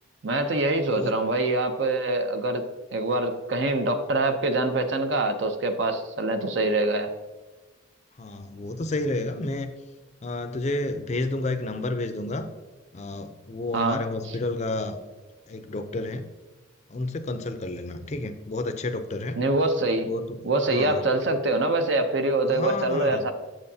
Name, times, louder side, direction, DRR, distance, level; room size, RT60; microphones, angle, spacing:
voice 1, 0.2-2.6 2.9-7.1 13.7-14.0 19.4-20.1 20.4-23.3, right 2 dB, 60° right, 7 dB, 0.6 m, -24 dB
voice 2, 8.2-9.7 10.2-12.5 12.9-15.0 15.5-16.3 16.9-19.4 20.0-20.4 20.7-21.1 22.5-23.3, left 2 dB, 35° left, 8 dB, 0.5 m, -30 dB
7.7 x 7.3 x 2.7 m, 1.2 s
head